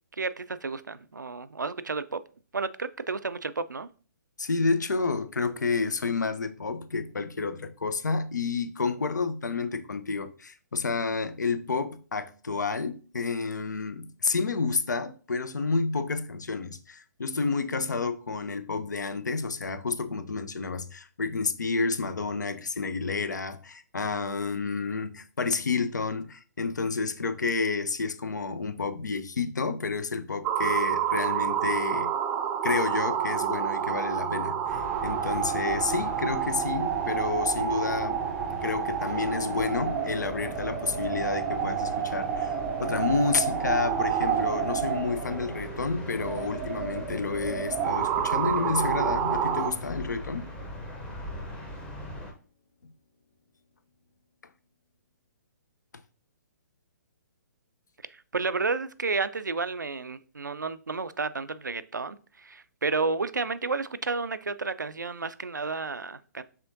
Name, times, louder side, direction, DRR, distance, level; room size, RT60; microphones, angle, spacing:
voice 1, 0.2-2.2 2.5-3.9 58.1-66.4, right 4 dB, 85° right, 0.4 m, -31 dB
voice 2, 4.4-32.1 32.6-38.3 38.6-50.5 52.8-52.9, left 4 dB, 75° left, 0.5 m, -30 dB
sound 1, 30.4-49.7, right 8 dB, 20° right, 0.4 m, -29 dB
sound 2, 34.6-52.3, left 1 dB, 10° left, 0.8 m, -40 dB
sound 3, 39.1-42.4 42.8-46.6 47.2-51.4 52.1-52.2, left 4 dB, 40° left, 1.3 m, -46 dB
5.7 x 3.6 x 2.6 m
figure-of-eight pair, 130°, 10 cm